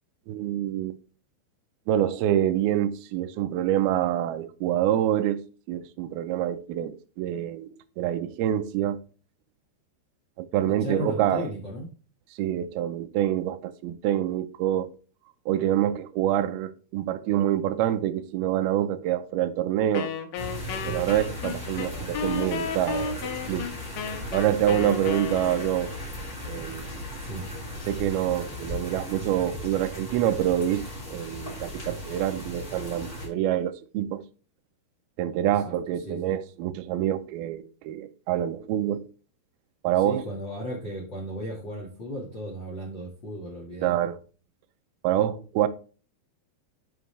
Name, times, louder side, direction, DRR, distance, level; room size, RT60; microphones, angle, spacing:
voice 1, 0.3-1.0 1.9-5.4 5.7-9.0 10.4-11.5 12.4-14.9 15.5-20.1 20.8-23.7 24.3-26.0 26.5-26.9 27.9-30.9 31.1-34.2 35.2-39.1 39.8-40.2 43.8-44.2 45.0-45.7, right 11 dB, 90° right, 2.2 m, -26 dB
voice 2, 10.7-11.9 21.9-22.1 27.2-27.4 35.4-35.5 36.0-36.4 40.0-43.9, equal, 60° left, 1.2 m, -35 dB
Wind instrument woodwind instrument, 19.9-26.0, left 6 dB, 90° left, 3.3 m, -33 dB
sound 1, 20.3-33.3, equal, 20° left, 2.8 m, -37 dB
9.2 x 5.1 x 3.3 m
omnidirectional pair, 5.3 m